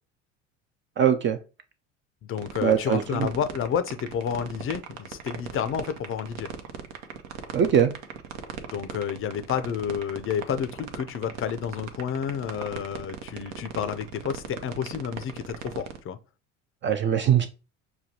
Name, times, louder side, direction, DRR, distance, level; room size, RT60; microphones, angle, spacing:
voice 1, 1.0-1.4 2.6-3.3 7.5-7.9 16.8-17.5, right 8 dB, 30° right, 0.4 m, -21 dB
voice 2, 2.2-6.5 8.7-16.2, left 8 dB, 35° left, 0.5 m, -30 dB
sound 1, 2.4-16.0, right 8 dB, 70° right, 0.7 m, -38 dB
6.0 x 2.2 x 2.8 m
hypercardioid pair, 70°, 38 cm